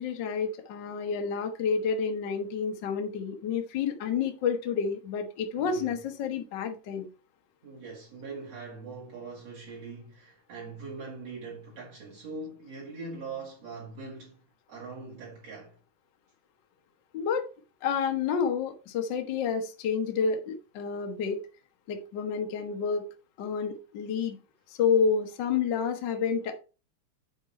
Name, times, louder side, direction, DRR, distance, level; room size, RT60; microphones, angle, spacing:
voice 1, 0.0-7.1 17.1-17.5 17.8-21.4 21.9-23.1 23.4-24.4 24.7-26.6, left 6 dB, 80° left, 1.0 m, -29 dB
voice 2, 5.5-5.9 7.6-14.4 14.7-15.8, right 4 dB, 50° right, 2.9 m, -42 dB
8.8 x 4.1 x 4.3 m
omnidirectional pair, 3.8 m